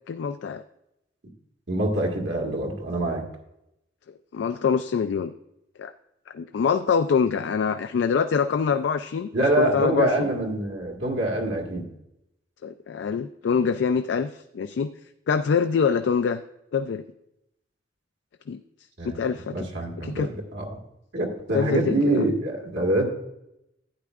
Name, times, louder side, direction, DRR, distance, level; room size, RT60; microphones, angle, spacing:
voice 1, 0.1-0.6 4.3-5.3 5.8-5.9 6.3-9.3 9.6-10.3 12.6-14.9 15.3-16.4 16.7-17.0 18.5-18.6 19.0-19.7 20.0-20.3 21.5-22.2, left 6 dB, 85° left, 9 dB, 0.3 m, -25 dB
voice 2, 1.7-3.2 9.3-11.8 19.0-19.2 19.5-20.8 21.1-23.1, right 1 dB, 90° right, -2 dB, 1.8 m, -25 dB
12.0 x 9.2 x 2.4 m, 0.83 s
head